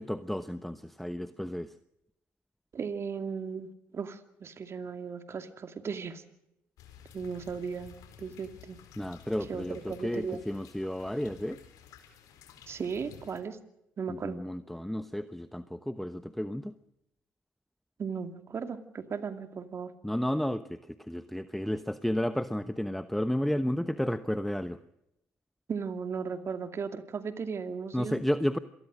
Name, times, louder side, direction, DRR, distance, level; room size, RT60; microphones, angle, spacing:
voice 1, 0.0-1.7 9.0-11.6 14.1-16.7 20.0-24.8 27.9-28.6, equal, 5° left, 12 dB, 1.0 m, -32 dB
voice 2, 2.7-6.2 7.1-8.8 9.5-10.4 12.7-13.6 14.0-14.4 18.0-19.9 25.7-28.2, right 6 dB, 45° right, 9 dB, 2.4 m, -36 dB
sound 1, 6.8-13.4, left 8 dB, 70° left, 4.0 m, -53 dB
27.0 x 19.5 x 6.4 m, 0.84 s
hypercardioid pair, 60°, 6 cm